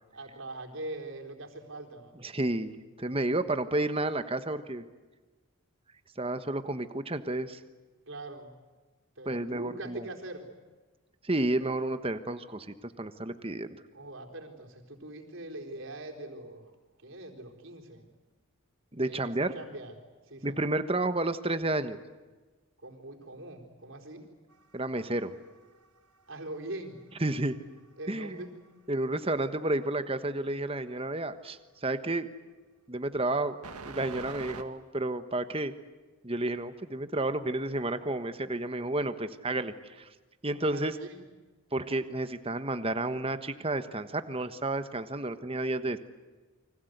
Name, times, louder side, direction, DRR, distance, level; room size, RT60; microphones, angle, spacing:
voice 1, 0.1-2.2 8.1-8.5 9.2-10.5 13.9-16.7 17.0-18.1 19.0-19.2 19.5-19.9 20.3-20.6 22.8-24.3 26.3-27.0 28.0-28.5 40.7-41.2, right 2 dB, 60° right, 1 dB, 4.3 m, -42 dB
voice 2, 2.2-4.8 6.2-7.6 9.2-10.1 11.2-13.7 18.9-19.5 20.4-22.0 24.7-25.3 27.2-27.6 28.1-28.4 28.9-32.3 32.9-33.6 33.8-35.7 36.2-40.1 40.4-40.9 41.7-46.0, right 2 dB, 25° right, 10 dB, 1.3 m, -31 dB
sound 1, 24.5-27.2 27.5-28.7 33.6-34.6, right 4 dB, 90° right, 1.9 m, -45 dB
29.5 x 24.5 x 8.1 m, 1.3 s
head